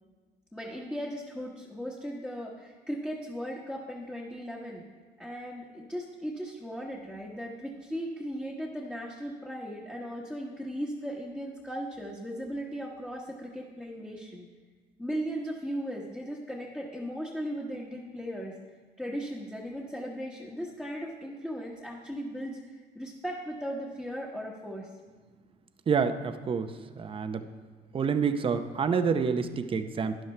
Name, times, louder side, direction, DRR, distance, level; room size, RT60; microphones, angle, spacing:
voice 1, 0.5-4.8 5.2-14.5 15.0-18.5 19.0-24.9, equal, 5° left, -4 dB, 1.2 m, -37 dB
voice 2, 25.9-27.5 27.9-30.2, right 6 dB, 30° right, 9 dB, 0.7 m, -28 dB
12.5 x 10.5 x 3.3 m, 1.5 s
cardioid pair, 110°, 17 cm